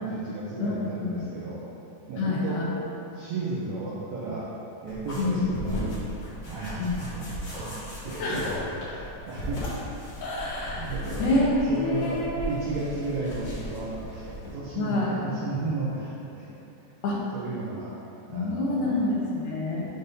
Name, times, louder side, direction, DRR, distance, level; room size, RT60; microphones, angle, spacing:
voice 1, 0.0-1.7 2.1-2.6 3.1-4.5 4.8-6.0 6.5-8.5 8.8-9.0 9.3-9.7 10.8-11.3 11.7-12.2 12.5-14.2 14.5-16.5 17.3-18.0 18.3-19.0, right 3 dB, 80° right, -7 dB, 1.6 m, -34 dB
voice 2, 0.6-1.3 2.2-2.7 5.2-5.4 6.8-6.9 8.2-8.5 10.2-10.9 11.2-12.4 14.8-15.2 17.0-17.2 18.3-19.9, left 2 dB, 70° left, -5 dB, 2.4 m, -27 dB
sound 1, 4.9-14.5, equal, 55° left, 1.3 m, -37 dB
8.0 x 2.7 x 5.3 m, 2.8 s
omnidirectional pair, 4.2 m